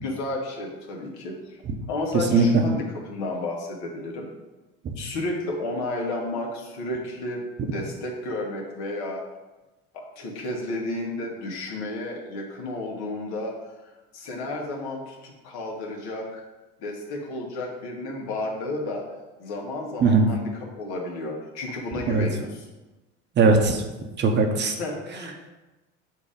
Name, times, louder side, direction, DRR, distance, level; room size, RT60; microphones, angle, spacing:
voice 1, 0.0-1.6 1.9-4.3 5.0-7.4 7.7-9.2 9.9-13.5 13.8-16.4 16.8-19.0 19.4-22.7 24.8-25.5, left 2 dB, 65° left, -1 dB, 1.8 m, -32 dB
voice 2, 2.3-2.6 4.8-4.9 20.0-20.3 22.1-22.3 23.4-23.8 24.2-24.7, right 4 dB, 35° right, 4 dB, 0.9 m, -19 dB
7.2 x 2.9 x 5.1 m, 1.1 s
supercardioid pair, 105°, 30 cm